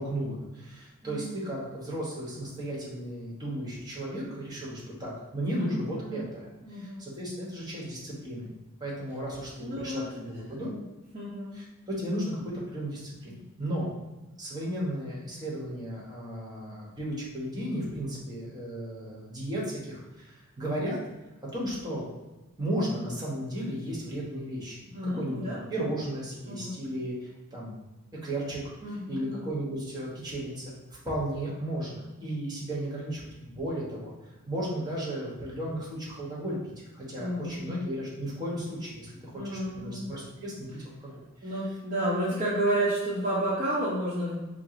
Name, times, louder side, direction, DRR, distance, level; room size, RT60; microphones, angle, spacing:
voice 1, 0.0-6.4 6.7-8.5 8.8-10.7 11.5-13.9 14.4-21.0 21.4-22.0 22.6-24.8 25.1-27.8 28.2-28.7 29.1-30.7 31.0-34.1 34.5-36.6 36.9-41.1 41.4-41.5, right 1 dB, 20° right, -5 dB, 1.1 m, -34 dB
voice 2, 1.0-1.4 5.5-6.2 6.6-7.1 9.6-10.0 10.6-10.8 11.1-11.6 24.9-25.6 26.5-26.8 28.8-29.5 37.1-37.9 39.3-40.1 41.4-44.4, right 1 dB, 35° right, -8 dB, 0.8 m, -31 dB
4.7 x 2.1 x 3.7 m, 1.1 s
head